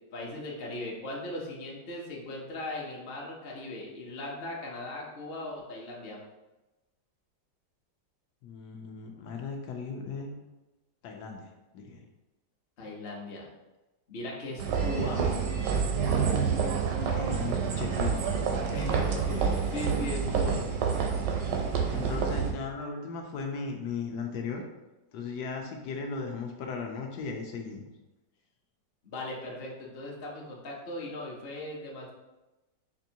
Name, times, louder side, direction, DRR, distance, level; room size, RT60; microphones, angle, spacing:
voice 1, 0.1-6.2 12.8-13.4 14.1-15.2 18.7-20.6 29.0-32.1, left 2 dB, 55° left, -3 dB, 0.6 m, -38 dB
voice 2, 8.4-10.3 11.0-12.1 17.0-18.3 19.9-20.1 20.4-20.7 21.9-24.6 25.1-27.9, left 4 dB, 75° left, 2 dB, 1.1 m, -37 dB
sound 1, 14.6-22.5, right 6 dB, 90° right, 1.3 m, -28 dB
5.2 x 2.6 x 2.7 m, 1.1 s
omnidirectional pair, 1.9 m